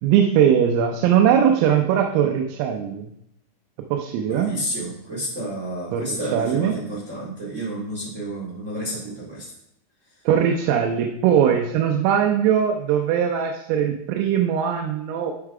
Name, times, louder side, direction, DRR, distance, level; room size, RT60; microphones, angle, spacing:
voice 1, 0.0-3.1 3.9-4.5 5.9-6.8 10.3-15.3, right 8 dB, 85° right, 2 dB, 3.5 m, -20 dB
voice 2, 4.2-9.5, right 1 dB, 60° right, -6 dB, 0.7 m, -30 dB
12.5 x 4.6 x 4.8 m, 0.77 s
omnidirectional pair, 5.8 m